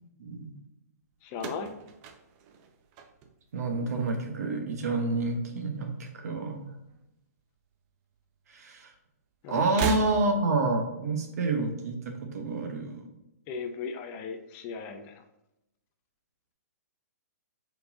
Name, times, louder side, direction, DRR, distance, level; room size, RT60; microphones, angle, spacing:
voice 1, 0.2-0.5 3.5-6.7 8.5-8.9 9.5-13.1, right 3 dB, 70° right, 4 dB, 1.0 m, -29 dB
voice 2, 1.2-1.7 9.4-9.9 13.5-15.2, left 5 dB, 30° left, 6 dB, 0.5 m, -37 dB
sound 1, 1.3-3.7 4.0-4.6 5.6-6.6 6.9-7.0 8.1-8.2 9.6-10.6, right 6 dB, 30° right, 0.5 m, -37 dB
4.5 x 3.9 x 2.7 m, 0.89 s
hypercardioid pair, 140°, 9 cm